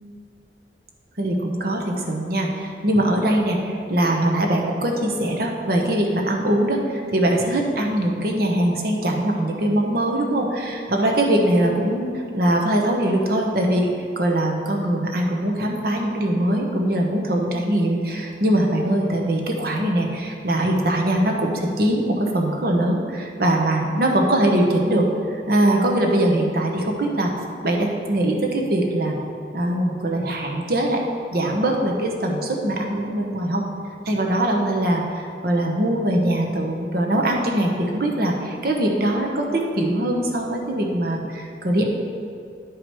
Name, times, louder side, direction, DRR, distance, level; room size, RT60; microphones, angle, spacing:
voice 1, 1.2-13.9 14.2-25.1 25.3-27.3 27.6-29.2 29.5-31.0 31.3-33.6 34.1-41.8, right 1 dB, 55° right, 1 dB, 1.1 m, -22 dB
10.5 x 4.9 x 4.6 m, 2.5 s
head